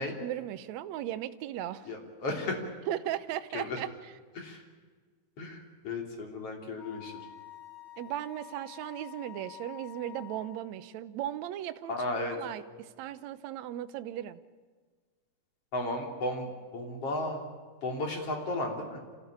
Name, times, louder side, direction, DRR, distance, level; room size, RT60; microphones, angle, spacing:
voice 1, 0.0-1.9 2.9-4.1 8.0-11.9 12.3-14.4, right 12 dB, 75° right, 11 dB, 1.6 m, -37 dB
voice 2, 1.9-2.5 3.5-3.8 4.4-4.6 5.4-7.1 11.9-12.4 15.7-17.4 17.8-19.0, left 2 dB, 40° left, 2 dB, 4.0 m, -34 dB
Wind instrument woodwind instrument, 6.8-10.6, left 13 dB, 75° left, 4.7 m, -48 dB
27.0 x 15.5 x 8.7 m, 1.5 s
omnidirectional pair, 4.2 m